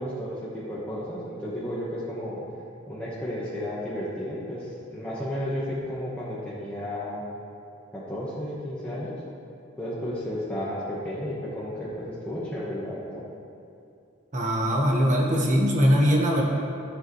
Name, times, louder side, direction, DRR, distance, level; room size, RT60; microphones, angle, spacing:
voice 1, 0.0-2.4 2.9-7.2 7.9-9.1 9.8-13.2, equal, 5° left, -10 dB, 1.2 m, -33 dB
voice 2, 14.3-16.4, equal, 35° right, -1 dB, 1.3 m, -21 dB
13.0 x 7.6 x 3.1 m, 2.5 s
head